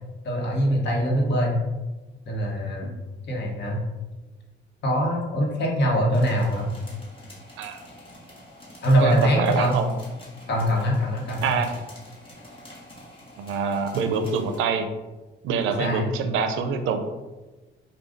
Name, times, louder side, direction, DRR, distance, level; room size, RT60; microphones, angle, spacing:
voice 1, 0.2-1.5 2.3-2.9 3.3-3.8 4.8-6.7 8.8-9.7 10.5-11.5 15.8-16.0, equal, 60° left, -1 dB, 1.0 m, -23 dB
sound 1, 6.1-14.6, left 1 dB, 25° left, 1.2 m, -46 dB
voice 2, 9.0-9.9 11.4-11.7 13.4-14.9 15.4-17.0, right 5 dB, 85° right, 7 dB, 0.4 m, -25 dB
4.9 x 2.2 x 2.5 m, 1.2 s
cardioid pair, 90°, 20 cm